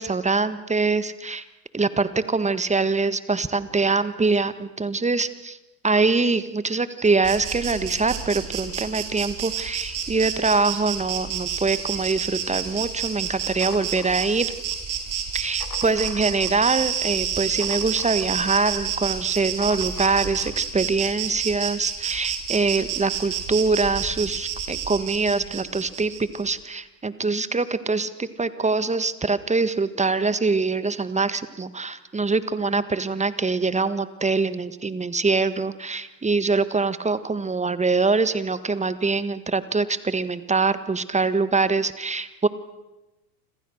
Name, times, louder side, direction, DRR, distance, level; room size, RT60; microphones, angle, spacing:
voice 1, 0.0-1.4 1.7-5.6 5.8-14.5 15.3-42.5, right 4 dB, 15° right, 13 dB, 1.6 m, -24 dB
Insect, 7.2-26.4, right 8 dB, 40° right, 5.4 m, -30 dB
sound 1, 13.6-14.8 15.3-16.7 17.1-18.6 19.3-20.6, left 12 dB, 65° left, 3.0 m, -43 dB
29.0 x 26.0 x 6.5 m, 1.0 s
hypercardioid pair, 85°, 49 cm